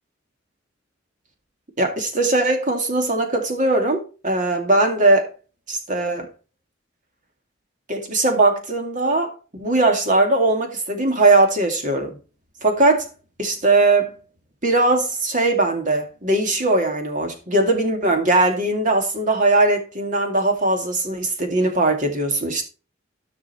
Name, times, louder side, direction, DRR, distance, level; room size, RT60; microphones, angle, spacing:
voice 1, 1.8-5.3 5.7-6.3 7.9-9.3 9.6-12.2 12.6-13.0 13.4-14.1 14.6-22.6, right 2 dB, 40° right, 2.4 m, -20 dB
13.5 x 6.1 x 4.3 m
head